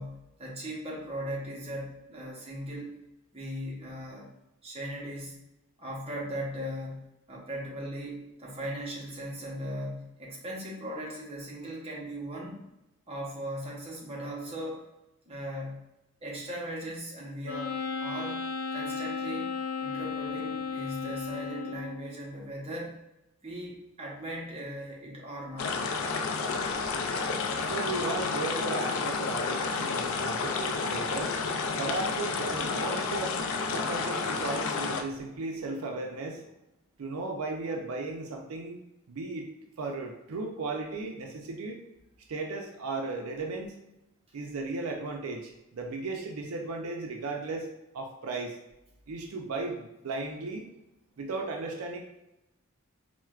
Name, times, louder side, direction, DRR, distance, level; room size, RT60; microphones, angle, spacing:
voice 1, 0.0-3.0 3.3-4.3 4.6-5.4 5.8-12.6 13.1-14.9 15.3-15.8 16.2-18.5 18.7-19.5 19.8-22.9 23.4-25.7, equal, 30° right, -4 dB, 0.8 m, -38 dB
Wind instrument woodwind instrument, 17.4-22.1, left 5 dB, 85° left, 0.9 m, -34 dB
sound 1, 25.6-35.0, left 4 dB, 65° left, 0.3 m, -30 dB
voice 2, 26.5-36.5 37.0-38.8 39.1-39.5 39.8-41.8 42.3-43.8 44.3-47.7 47.9-48.6 49.1-50.6 51.2-52.0, right 3 dB, 85° right, 2 dB, 0.4 m, -36 dB
4.3 x 2.1 x 2.3 m, 0.92 s
head